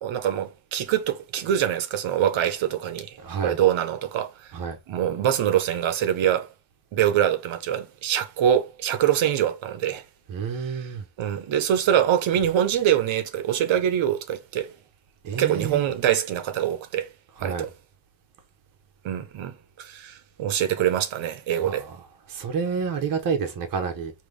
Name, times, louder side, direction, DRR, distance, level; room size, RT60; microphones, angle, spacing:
voice 1, 0.0-3.2 3.4-4.5 4.9-6.5 6.9-10.0 10.5-10.9 11.2-14.7 15.3-17.1 17.4-17.7 19.0-21.8, right 10 dB, 75° right, 1.0 m, -24 dB
voice 2, 3.2-3.6 4.5-4.8 10.3-11.0 15.2-15.8 17.4-17.7 21.6-22.0 22.3-24.1, right 6 dB, 45° right, 0.9 m, -29 dB
5.4 x 2.9 x 3.3 m
cardioid pair, 160°, 47 cm